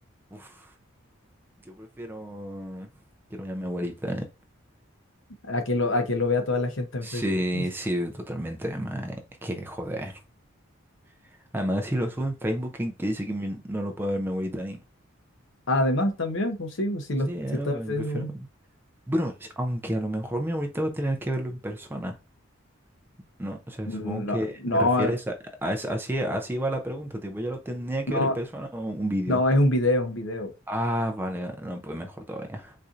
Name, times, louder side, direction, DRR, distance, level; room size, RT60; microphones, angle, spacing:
voice 1, 0.3-0.7 1.6-2.9 3.3-4.2 7.0-10.2 11.5-14.8 17.3-18.5 19.1-22.2 23.4-25.3 25.6-29.4 30.7-32.7, equal, 10° right, 0.3 m, -30 dB
voice 2, 5.5-7.3 7.5-7.6 15.7-17.3 17.6-18.3 23.9-25.1 28.1-28.4 29.3-30.5, left 1 dB, 60° left, 0.7 m, -25 dB
4.2 x 2.5 x 2.4 m
head